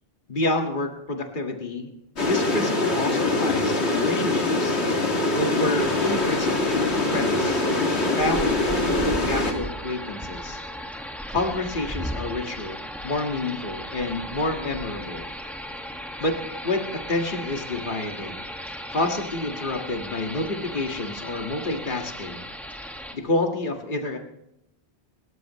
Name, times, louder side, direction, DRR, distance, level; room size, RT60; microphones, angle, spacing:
voice 1, 0.3-1.9 2.2-4.8 5.3-7.6 8.1-10.6 11.3-15.3 16.2-16.4 16.6-18.4 18.9-22.4 23.1-24.2, left 2 dB, 50° left, 3 dB, 2.0 m, -28 dB
sound 1, 2.2-9.5, left 2 dB, 80° left, 2.4 m, -23 dB
sound 2, 5.7-23.1, equal, ahead, 1.7 m, -36 dB
28.5 x 14.0 x 3.1 m, 0.84 s
omnidirectional pair, 1.1 m